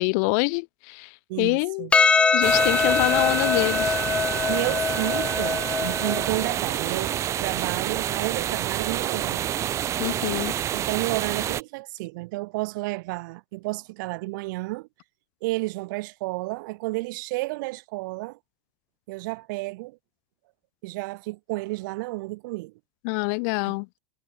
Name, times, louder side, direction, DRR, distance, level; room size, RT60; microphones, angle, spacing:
voice 1, 0.0-1.9 2.3-4.0 10.0-10.5 23.0-23.9, left 36 dB, 50° left, 0.7 m, -26 dB
voice 2, 1.3-1.9 4.5-9.6 10.7-14.9 15.4-18.4 19.1-20.0 20.8-22.7, right 23 dB, 60° right, 1.8 m, -31 dB
Percussion, 1.9-6.5, left 5 dB, 10° left, 0.3 m, -23 dB
sound 1, 2.4-11.6, right 11 dB, 25° right, 1.1 m, -28 dB
supercardioid pair, 160°, 11 cm